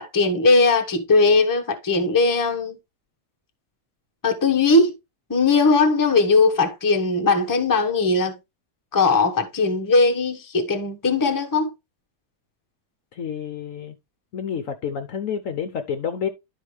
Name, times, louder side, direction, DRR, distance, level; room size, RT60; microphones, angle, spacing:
voice 1, 0.0-2.8 4.2-4.9 5.3-8.3 8.9-11.7, left 3 dB, 15° left, 0.8 m, -19 dB
voice 2, 13.1-13.9 14.3-16.3, left 7 dB, 60° left, 0.9 m, -29 dB
12.0 x 4.5 x 3.1 m
omnidirectional pair, 1.8 m